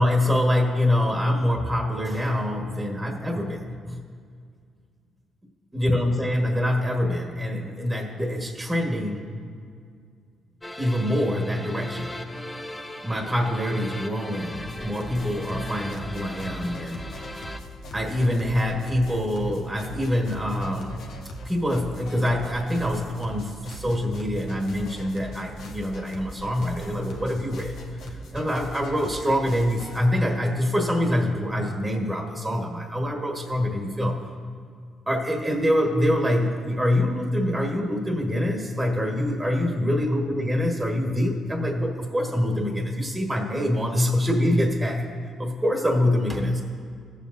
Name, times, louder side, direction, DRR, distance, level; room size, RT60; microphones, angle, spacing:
voice 1, 0.0-4.1 5.7-9.3 10.8-12.1 13.0-17.1 17.9-21.0 21.4-27.7 28.3-34.2 35.1-45.1 45.4-46.6, left 1 dB, 15° right, 1 dB, 1.4 m, -25 dB
sound 1, 10.6-17.6, left 1 dB, 10° left, 0.7 m, -39 dB
sound 2, 14.5-30.0, equal, 80° left, 1.2 m, -40 dB
17.5 x 7.3 x 2.6 m, 2.1 s
cardioid pair, 90°, 0 cm